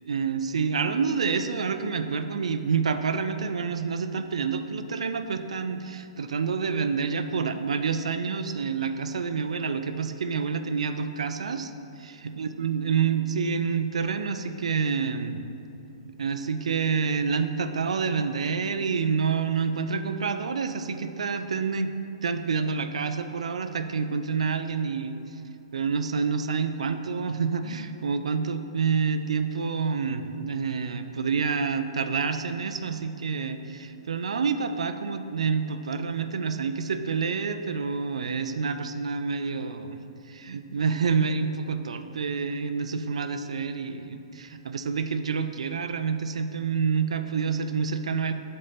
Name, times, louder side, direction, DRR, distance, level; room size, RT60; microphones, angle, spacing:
voice 1, 0.0-11.7 12.0-15.4 16.0-21.9 22.2-25.2 25.7-40.0 40.3-48.3, right 5 dB, 90° right, 9 dB, 0.4 m, -28 dB
5.5 x 4.3 x 5.1 m, 2.8 s
hypercardioid pair, 155°, 3 cm